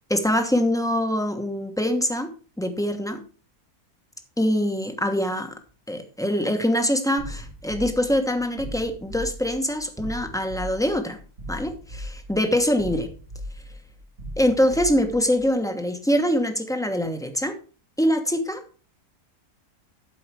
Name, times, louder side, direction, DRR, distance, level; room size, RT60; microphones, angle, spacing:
voice 1, 0.1-2.3 2.6-3.2 4.4-5.5 5.9-11.2 11.5-13.1 14.4-17.5 18.0-18.6, equal, 5° left, 5 dB, 0.9 m, -24 dB
sound 1, 7.2-15.4, equal, 80° right, 2.5 m, -38 dB
12.0 x 4.8 x 4.7 m, 0.38 s
omnidirectional pair, 1.6 m